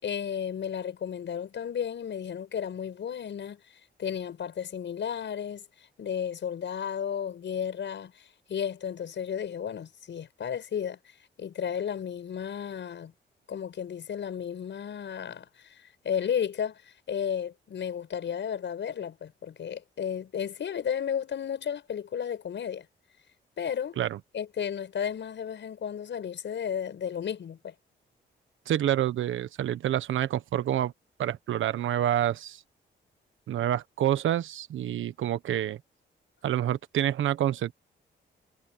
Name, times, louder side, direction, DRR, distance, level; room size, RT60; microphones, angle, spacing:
voice 1, 0.0-3.6 4.0-5.6 6.0-11.0 11.4-13.1 13.5-15.8 16.0-16.8 17.1-22.8 23.6-24.0 24.3-27.7, left 8 dB, 65° left, 6.6 m, -33 dB
voice 2, 28.7-30.9 31.2-32.6 33.5-35.8 36.4-37.7, right 11 dB, 80° right, 1.3 m, -27 dB
cardioid pair, 65°, 20 cm